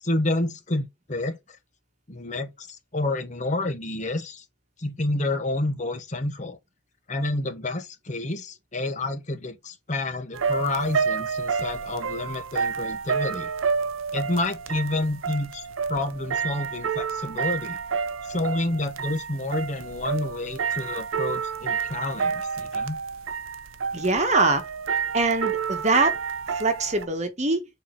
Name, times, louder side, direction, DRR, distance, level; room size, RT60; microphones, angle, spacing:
voice 1, 0.0-1.6 2.1-4.4 4.8-6.6 7.1-13.5 14.1-17.8 18.2-23.0, left 2 dB, 35° left, 1.0 m, -29 dB
sound 1, 10.3-27.1, right 6 dB, 85° right, 0.8 m, -29 dB
voice 2, 23.9-24.7 25.1-26.2 26.5-27.6, right 3 dB, 35° right, 1.2 m, -23 dB
6.9 x 4.4 x 3.8 m
head